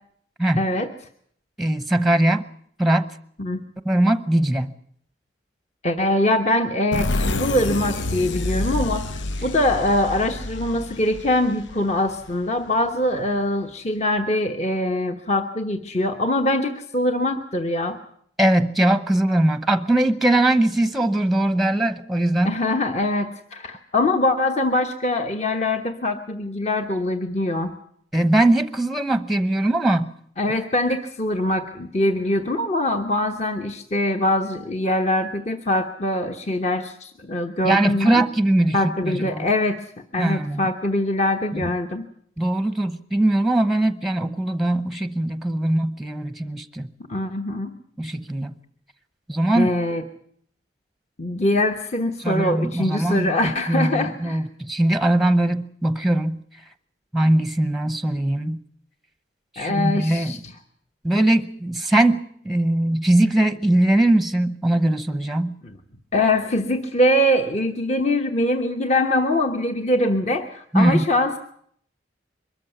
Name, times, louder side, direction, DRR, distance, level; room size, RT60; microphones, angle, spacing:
voice 1, 0.6-0.9 3.4-3.6 5.8-18.0 22.4-27.8 30.4-38.2 38.7-39.8 40.1-42.0 47.1-47.7 49.5-50.0 51.2-54.4 59.6-60.5 65.6-65.7 66.1-71.4, left 1 dB, 35° left, 6 dB, 1.1 m, -23 dB
voice 2, 1.6-2.5 2.8-3.1 3.9-4.7 18.4-22.5 28.1-30.1 37.6-38.8 39.0-39.5 40.2-40.7 41.5-41.6 42.4-46.9 48.0-48.5 49.3-49.7 52.2-56.4 57.1-58.6 59.5-60.4 61.0-65.6 70.7-71.0, right 1 dB, ahead, 11 dB, 0.8 m, -21 dB
sound 1, 6.9-12.4, left 2 dB, 85° left, 0.8 m, -28 dB
23.0 x 13.5 x 9.4 m, 0.65 s
head